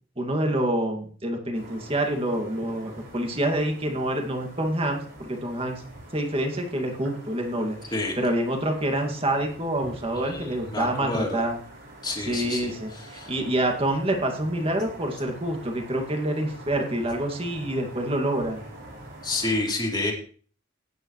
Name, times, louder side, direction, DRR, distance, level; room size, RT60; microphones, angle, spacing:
voice 1, 0.2-5.8 6.1-11.6 12.3-18.6, right 1 dB, 30° right, 3 dB, 2.2 m, -27 dB
sound 1, 1.5-19.6, right 1 dB, 60° right, 6.0 m, -45 dB
voice 2, 10.1-11.4 12.0-13.3 19.2-20.1, left 2 dB, 20° left, 0 dB, 2.7 m, -29 dB
17.5 x 9.2 x 3.2 m, 0.43 s
head